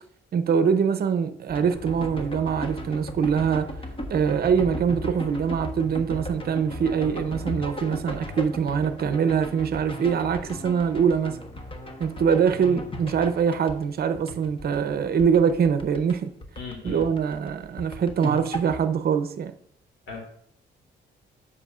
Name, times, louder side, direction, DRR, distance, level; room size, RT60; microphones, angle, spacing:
voice 1, 0.3-3.7 4.1-11.4 12.0-16.3 16.8-19.5, right 7 dB, 50° right, 0.7 m, -23 dB
sound 1, 1.5-16.2 16.4-18.9, left 1 dB, 25° left, 1.1 m, -36 dB
voice 2, 16.6-17.0 20.1-20.2, left 5 dB, 70° left, 2.3 m, -37 dB
10.0 x 6.8 x 2.5 m
cardioid pair, 90°, 20 cm